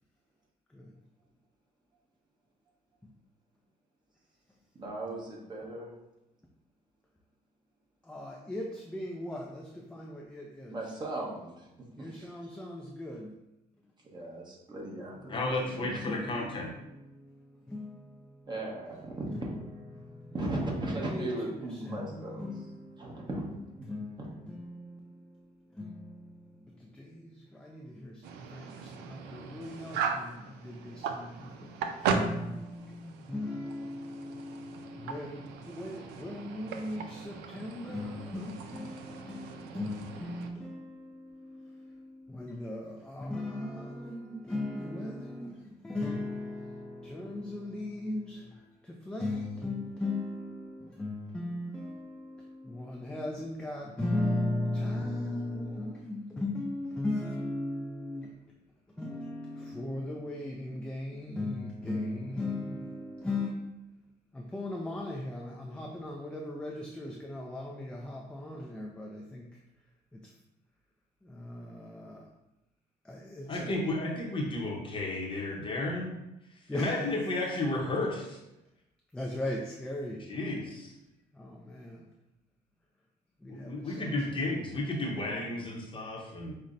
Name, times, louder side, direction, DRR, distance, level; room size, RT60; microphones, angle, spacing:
voice 1, 4.7-5.9 10.7-12.3 14.0-16.1 18.5-19.3 20.3-22.5 23.0-23.4, right 2 dB, 25° right, -2 dB, 0.9 m, -37 dB
voice 2, 8.0-10.8 12.0-13.3 13.8-13.9 15.1-15.6 15.9-18.5 19.3-19.6 19.9-23.5 23.8-58.4 58.9-63.7 64.3-69.6 70.1-70.3 71.2-72.3 73.0-73.9 76.7-77.1 79.1-80.3 81.3-82.1 83.4-84.3, left 2 dB, 5° left, -1 dB, 0.3 m, -38 dB
voice 3, 15.3-16.7 73.5-76.2 76.7-78.4 80.3-80.9 83.5-86.5, left 2 dB, 30° left, -1 dB, 0.7 m, -33 dB
sound 1, 28.2-40.5, right 5 dB, 85° right, 0.4 m, -38 dB
5.3 x 2.1 x 2.5 m, 0.92 s
cardioid pair, 110°, 17 cm